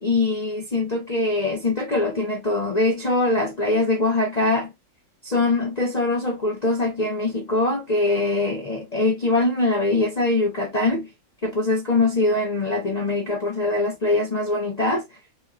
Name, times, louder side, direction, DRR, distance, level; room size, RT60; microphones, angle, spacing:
voice 1, 0.0-4.7 5.2-11.1 11.4-15.0, left 2 dB, 65° left, 0.4 m, -22 dB
5.2 x 2.1 x 2.7 m
omnidirectional pair, 2.0 m